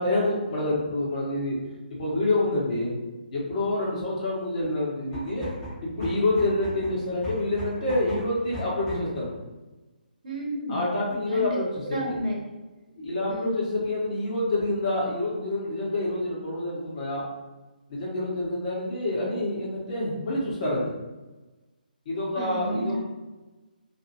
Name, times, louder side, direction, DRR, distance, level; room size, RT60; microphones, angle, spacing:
voice 1, 0.0-1.6 2.0-2.9 3.3-5.5 6.0-9.3 10.7-11.8 12.1-12.2 13.0-17.2 17.9-20.9 22.0-23.0, left 2 dB, 45° left, -5 dB, 1.2 m, -27 dB
sound 1, 5.0-9.2, left 1 dB, 5° left, 1.0 m, -38 dB
voice 2, 10.2-10.9 11.3-11.6 11.9-12.3 13.3-13.5 22.3-23.0, right 1 dB, 50° right, -3 dB, 1.0 m, -31 dB
2.6 x 2.4 x 2.9 m, 1.1 s
figure-of-eight pair, 140°, 5 cm